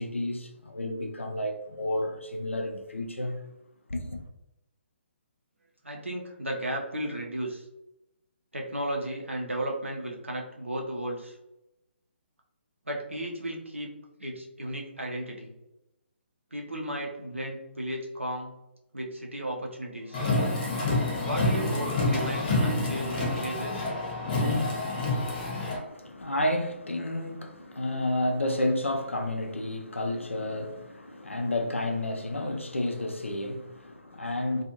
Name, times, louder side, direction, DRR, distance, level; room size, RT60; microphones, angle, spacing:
voice 1, 0.0-3.4 3.9-4.2 25.6-34.6, left 1 dB, 85° left, 0.5 m, -31 dB
voice 2, 5.8-7.7 8.5-11.4 12.8-13.9 14.2-15.5 16.5-18.5 18.9-20.2 21.2-23.9, right 1 dB, 85° right, 0.7 m, -34 dB
Car, 20.1-25.8, left 2 dB, 45° left, 1.1 m, -27 dB
2.5 x 2.4 x 2.8 m
figure-of-eight pair, 140°, 7 cm